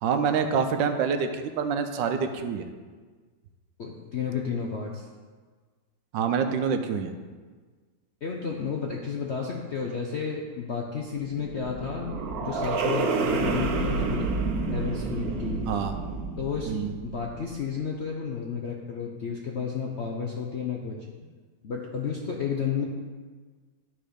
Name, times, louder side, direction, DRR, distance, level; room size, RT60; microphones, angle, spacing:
voice 1, 0.0-2.7 6.1-7.1 15.7-16.0 16.7-16.9, right 6 dB, 80° right, 7 dB, 1.3 m, -26 dB
voice 2, 3.8-5.1 8.2-14.3 14.7-15.6 16.4-16.8 17.0-21.0 21.6-22.8, left 6 dB, 65° left, 0 dB, 0.6 m, -32 dB
sound 1, 11.1-17.5, right 4 dB, 60° right, 1.1 m, -29 dB
11.5 x 4.2 x 5.1 m, 1.5 s
omnidirectional pair, 2.1 m